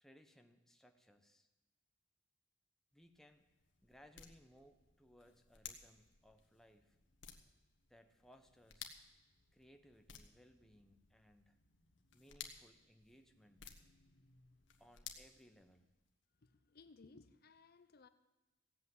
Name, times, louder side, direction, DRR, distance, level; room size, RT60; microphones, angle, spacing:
voice 1, 0.0-1.5 2.9-3.5 3.8-7.0 7.9-8.9 9.5-11.6 12.1-13.6 14.8-15.9, equal, ahead, 6 dB, 0.9 m, -65 dB
sound 1, 2.9-16.1, left 8 dB, 70° left, 1.3 m, -58 dB
voice 2, 16.4-18.1, left 3 dB, 55° left, 12 dB, 0.7 m, -62 dB
16.0 x 8.4 x 7.7 m, 1.1 s
head